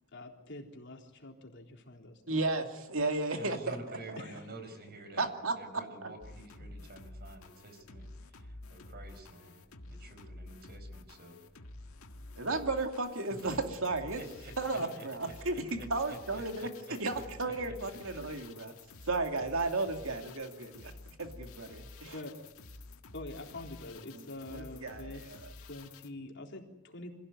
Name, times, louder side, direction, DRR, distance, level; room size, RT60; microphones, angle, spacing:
voice 1, 0.1-2.4 4.2-4.4 6.6-6.7 14.8-14.9 22.1-22.4 23.1-25.3 25.6-27.2, left 2 dB, 60° left, 2 dB, 3.8 m, -45 dB
voice 2, 2.3-4.2 5.2-5.6 12.4-14.2 14.6-16.7 17.0-18.7 19.0-20.9 21.2-22.2 24.1-24.2 24.5-25.5, right 3 dB, 70° right, 5 dB, 2.6 m, -34 dB
voice 3, 3.3-5.3 5.5-11.4 14.2-15.3 16.1-16.7 17.1-17.5 18.3-18.5, right 1 dB, 50° right, 7 dB, 4.9 m, -49 dB
sound 1, 6.2-26.1, left 2 dB, 90° left, 1.7 m, -50 dB
26.5 x 16.5 x 9.3 m, 0.91 s
head